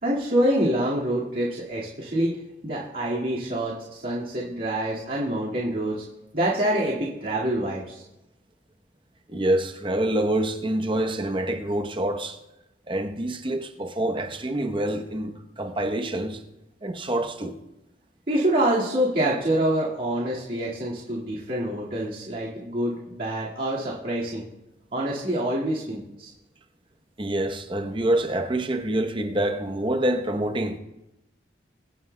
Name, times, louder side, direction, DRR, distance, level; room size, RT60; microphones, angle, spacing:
voice 1, 0.0-2.4 2.6-6.0 6.3-8.0 18.3-24.4 24.9-26.3, right 1 dB, 50° right, 2.0 m, -26 dB
voice 2, 9.3-12.4 12.9-16.4 16.8-17.6 27.2-30.8, right 1 dB, 30° right, 0.8 m, -26 dB
23.5 x 9.5 x 2.2 m
head